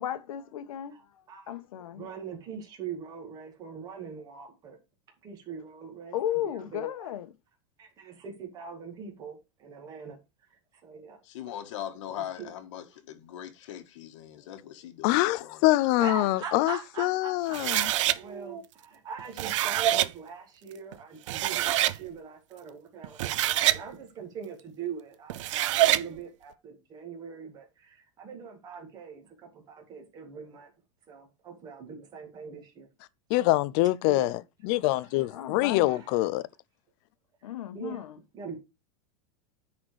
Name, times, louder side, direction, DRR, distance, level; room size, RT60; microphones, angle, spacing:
voice 1, 0.0-2.1 6.1-7.3 35.3-36.0 37.4-38.1, left 11 dB, 90° left, 1.4 m, -35 dB
voice 2, 1.9-4.8 5.2-7.1 7.8-10.2 10.5-11.2 12.2-12.5 16.0-30.7 31.1-32.9 34.0-34.4 35.8-36.2 37.7-38.0 38.3-38.6, right 6 dB, 25° right, 2.1 m, -42 dB
voice 3, 11.2-15.7, left 11 dB, 65° left, 1.5 m, -40 dB
voice 4, 15.0-17.9 33.3-36.4, left 17 dB, 40° left, 0.5 m, -25 dB
sound 1, 17.5-18.2 19.2-20.1 20.9-21.0 21.3-22.0 23.0-23.8 25.3-26.1, right 14 dB, 65° right, 0.5 m, -25 dB
10.0 x 4.3 x 4.7 m
supercardioid pair, 170°, 17 cm